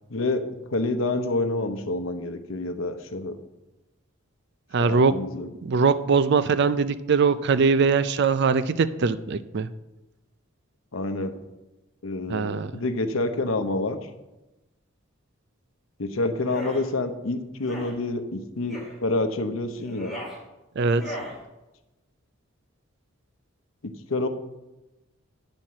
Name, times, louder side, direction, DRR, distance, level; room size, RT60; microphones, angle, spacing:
voice 1, 0.1-0.4 0.7-3.4 4.8-5.5 10.9-11.3 12.0-14.0 16.0-20.1 23.8-24.3, left 2 dB, 70° left, 8 dB, 0.8 m, -28 dB
voice 2, 4.7-5.2 5.6-9.7 12.3-12.7 20.8-21.1, right 5 dB, 55° right, 13 dB, 0.4 m, -22 dB
sound 1, 16.4-16.8 17.6-17.9 18.7-18.9 19.8-20.4 20.9-21.3, equal, ahead, 2.1 m, -37 dB
9.6 x 4.4 x 7.4 m, 1.0 s
head